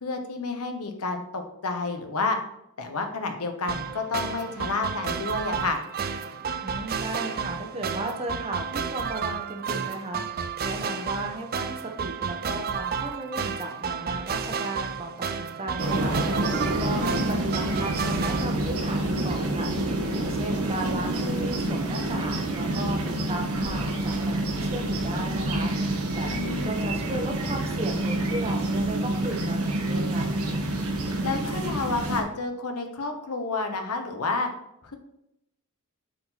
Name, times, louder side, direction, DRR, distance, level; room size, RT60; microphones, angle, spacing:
voice 1, 0.0-2.4 2.8-5.8 16.8-17.2 26.2-26.7 31.2-34.5 34.8-35.0, left 3 dB, 90° left, 5 dB, 1.1 m, -30 dB
sound 1, 3.7-18.4, right 6 dB, 45° right, 0.5 m, -32 dB
voice 2, 6.6-30.4, right 2 dB, 25° right, 3 dB, 1.0 m, -35 dB
sound 2, 15.8-32.2, right 1 dB, 70° right, 1.4 m, -28 dB
8.3 x 4.7 x 4.1 m, 0.81 s
head